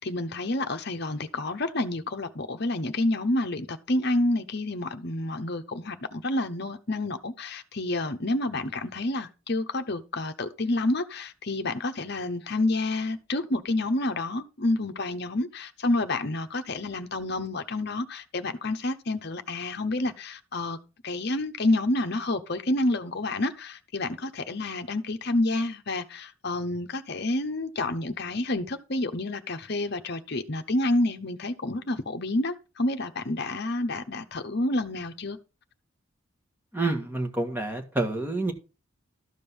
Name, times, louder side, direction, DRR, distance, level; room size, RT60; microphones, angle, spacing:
voice 1, 0.0-20.8 21.0-35.4, left 2 dB, 50° left, 0.9 m, -29 dB
voice 2, 36.7-38.5, right 2 dB, 10° right, 1.5 m, -28 dB
13.0 x 5.3 x 5.4 m
head